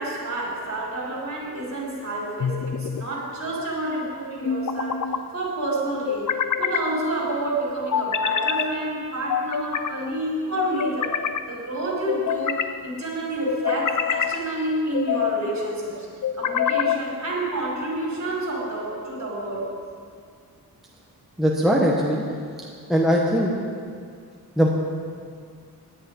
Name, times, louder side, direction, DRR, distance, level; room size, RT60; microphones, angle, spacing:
voice 1, 0.0-11.2 11.5-16.1 16.3-19.7, right 1 dB, 45° right, -4 dB, 4.3 m, -29 dB
sound 1, 2.4-3.1 4.4-5.2 6.1-6.9 7.9-8.7 9.3-9.9 10.6-11.4 12.1-12.7 13.5-14.4 14.9-15.5 16.2-17.0, left 8 dB, 50° left, 0.6 m, -25 dB
voice 2, 21.4-22.2 22.9-23.5 24.6-24.7, equal, ahead, -3 dB, 1.3 m, -20 dB
17.5 x 10.5 x 5.4 m, 2.2 s
wide cardioid pair, 140°, 38 cm